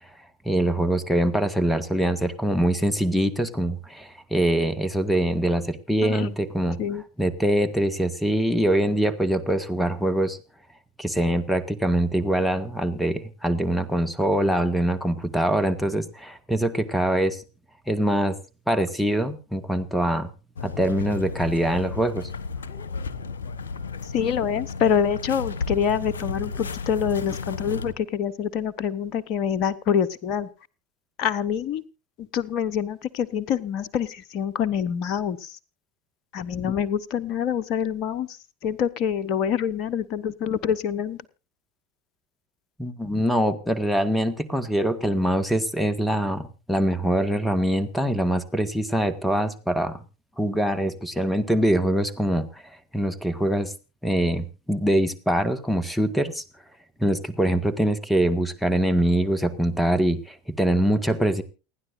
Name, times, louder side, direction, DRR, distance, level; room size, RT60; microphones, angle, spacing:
voice 1, 0.5-6.8 7.2-10.4 11.0-17.4 17.9-18.4 18.7-20.3 20.6-22.3 42.8-50.0 50.4-52.6 52.9-53.7 54.0-56.4 57.0-61.4, right 1 dB, 5° left, 11 dB, 1.7 m, -23 dB
voice 2, 6.0-6.3 6.8-7.0 24.0-30.5 31.2-31.8 32.2-35.6 36.3-38.4 38.6-41.2 43.0-43.2, left 8 dB, 50° left, 14 dB, 0.9 m, -26 dB
sound 1, 20.6-27.9, left 4 dB, 80° left, 1.0 m, -33 dB
29.0 x 9.9 x 2.6 m, 0.32 s
hypercardioid pair, 80°, 0 cm